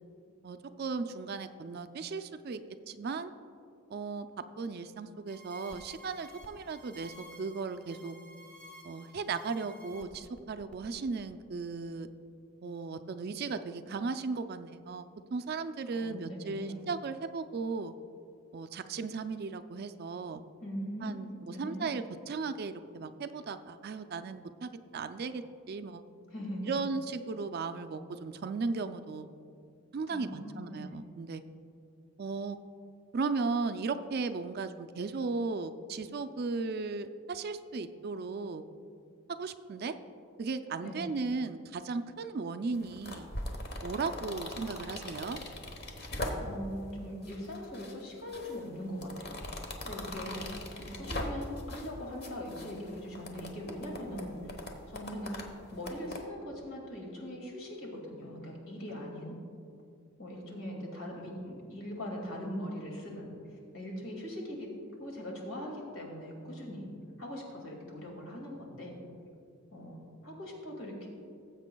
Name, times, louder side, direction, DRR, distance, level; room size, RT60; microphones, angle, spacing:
voice 1, 0.4-2.6 2.9-3.3 3.9-8.2 8.8-12.1 12.6-17.9 18.5-20.4 21.0-26.0 26.7-29.3 29.9-31.4 32.2-32.6 33.1-38.6 39.3-40.0 40.4-43.3 43.8-45.4, right 4 dB, 45° right, 10 dB, 0.3 m, -36 dB
sound 1, 5.3-11.2, equal, 5° left, 0.8 m, -53 dB
voice 2, 15.9-16.8 20.6-21.9 26.3-26.7 30.1-31.0 40.8-41.1 46.4-49.4 49.8-50.4 50.8-55.4 55.7-59.4 60.2-63.3 63.7-64.7 65.0-66.9 67.2-69.0 69.7-71.1, equal, 70° left, -1 dB, 2.2 m, -41 dB
sound 2, 42.7-46.7 47.2-47.9 48.3-51.9 52.2-56.2, left 1 dB, 45° left, 1.0 m, -40 dB
18.5 x 8.0 x 2.3 m, 2.5 s
head